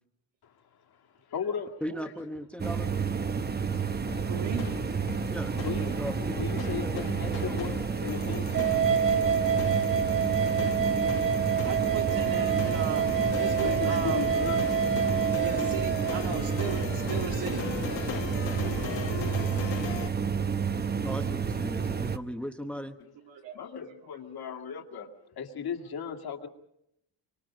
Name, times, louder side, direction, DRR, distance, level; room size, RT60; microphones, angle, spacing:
voice 1, 1.3-1.8 5.4-6.0 6.4-8.7 11.5-11.7 13.6-14.6 23.3-25.1 25.4-26.5, left 7 dB, 55° left, 2 dB, 2.3 m, -37 dB
voice 2, 1.8-2.9 5.3-7.7 21.0-23.0, equal, 5° left, 7 dB, 1.0 m, -38 dB
sound 1, 2.6-22.2, right 6 dB, 20° right, 0.8 m, -30 dB
sound 2, 4.1-20.1, left 9 dB, 75° left, 1.5 m, -39 dB
voice 3, 4.3-4.7 11.6-14.3 15.4-17.7 23.2-23.6, right 7 dB, 80° right, 2 dB, 2.7 m, -36 dB
sound 3, 8.5-16.2, right 8 dB, 45° right, 1.0 m, -27 dB
26.0 x 23.5 x 5.1 m, 0.79 s
cardioid pair, 135°, 44 cm